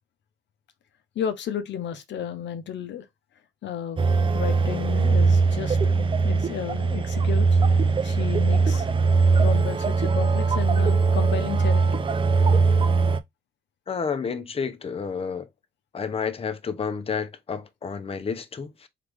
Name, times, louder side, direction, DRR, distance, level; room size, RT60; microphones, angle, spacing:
voice 1, 1.2-3.0 3.6-8.9 9.4-12.0, left 8 dB, 65° left, 0.7 m, -33 dB
sound 1, 4.0-13.2, right 4 dB, 25° right, 0.5 m, -21 dB
voice 2, 13.9-15.5 15.9-18.9, left 6 dB, 30° left, 0.7 m, -30 dB
3.7 x 3.4 x 3.4 m
cardioid pair, 90°, 20 cm